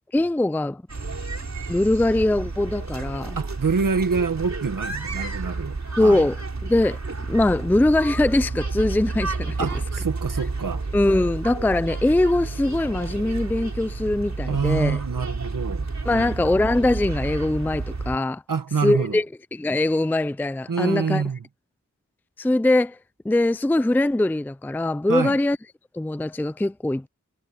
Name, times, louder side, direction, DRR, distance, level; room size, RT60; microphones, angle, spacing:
voice 1, 0.1-0.8 1.7-3.4 6.0-6.4 6.6-7.0 7.3-9.7 10.9-15.0 16.1-18.4 18.8-19.3 19.5-21.2 22.4-23.0 23.2-25.6 25.9-27.1, left 1 dB, 5° left, 0.4 m, -22 dB
sound 1, 0.9-18.2, right 3 dB, 55° right, 4.3 m, -31 dB
voice 2, 3.4-6.3 9.6-10.9 14.4-16.3 18.5-19.2 20.7-21.4 25.1-25.4, right 5 dB, 80° right, 1.8 m, -26 dB
wide cardioid pair, 75°, 32 cm